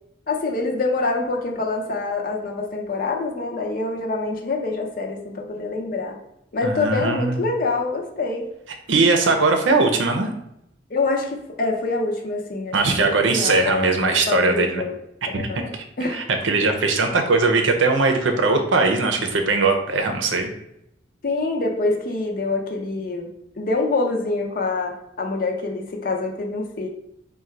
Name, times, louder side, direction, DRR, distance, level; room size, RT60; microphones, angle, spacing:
voice 1, 0.3-6.2 6.5-8.5 10.9-15.0 15.3-16.2 21.2-23.3 23.6-26.9, left 3 dB, 50° left, 1 dB, 0.6 m, -25 dB
voice 2, 6.6-7.4 8.9-10.3 12.7-14.8 15.3-15.8 16.1-20.5, right 3 dB, 85° right, 4 dB, 0.6 m, -20 dB
3.8 x 2.3 x 4.4 m, 0.80 s
head